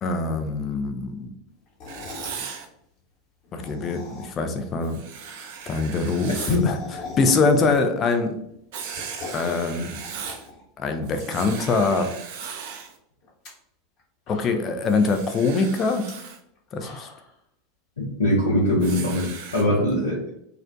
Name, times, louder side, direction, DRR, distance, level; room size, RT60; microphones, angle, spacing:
voice 1, 0.0-1.3 3.5-5.0 5.7-6.4 6.6-6.8 7.2-8.4 9.3-10.0 10.8-12.1 14.3-16.1 16.7-17.1 19.8-19.9, left 3 dB, 35° left, 7 dB, 0.4 m, -23 dB
sound 1, 1.7-2.4 3.4-4.5 4.9-5.0 5.2-5.3 5.5-5.6 5.9-8.1 8.4-9.5 10.0-11.2 11.5-12.1 12.4-12.5 13.2-13.5 14.0-14.1 14.3-14.9 15.9-16.1 16.5-17.3, left 3 dB, 50° left, 1.0 m, -41 dB
Writing, 1.9-2.7 4.8-6.6 8.7-10.5 11.0-13.0 14.8-16.4 18.8-19.6, right 7 dB, 60° right, 0.3 m, -37 dB
voice 2, 18.0-20.3, left 1 dB, 80° left, -7 dB, 0.7 m, -22 dB
2.4 x 2.1 x 2.5 m, 0.75 s
figure-of-eight pair, 80°, 0 cm